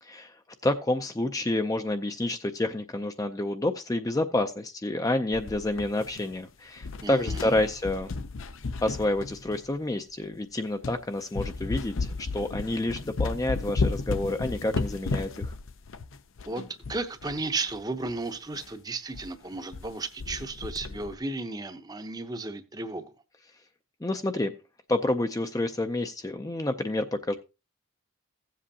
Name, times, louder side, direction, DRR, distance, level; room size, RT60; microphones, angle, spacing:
voice 1, 0.0-0.3 0.6-8.1 8.8-15.5 24.0-24.5 24.9-27.3, left 1 dB, 15° left, 0.4 m, -29 dB
sound 1, 5.3-6.5 6.8-9.8 10.3-10.4 10.8-11.0 11.3-17.4 17.7-17.8 18.0-18.1 18.5-18.7 19.1-19.3 19.5-19.9 20.2-21.1, left 3 dB, 70° left, 0.6 m, -33 dB
voice 2, 7.0-7.5 16.5-16.6 16.9-23.1, right 3 dB, 20° right, 0.7 m, -34 dB
16.0 x 7.5 x 2.8 m
head